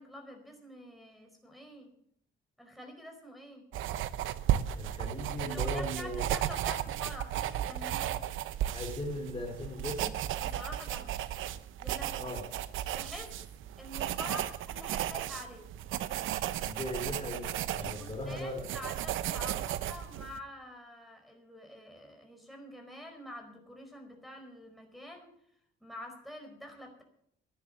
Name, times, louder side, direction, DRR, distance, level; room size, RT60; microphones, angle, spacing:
voice 1, 0.0-1.9 2.6-3.6 5.5-8.1 10.3-11.1 11.8-12.3 12.9-13.3 13.8-15.7 17.8-25.3 25.8-27.0, left 1 dB, ahead, 1 dB, 4.9 m, -47 dB
sound 1, 3.7-20.4, right 12 dB, 85° right, 0.8 m, -35 dB
voice 2, 4.7-6.3 8.7-10.2 12.2-12.4 16.6-18.7, left 1 dB, 25° left, 1 dB, 3.9 m, -38 dB
12.0 x 10.5 x 8.0 m, 0.69 s
cardioid pair, 90°, 20 cm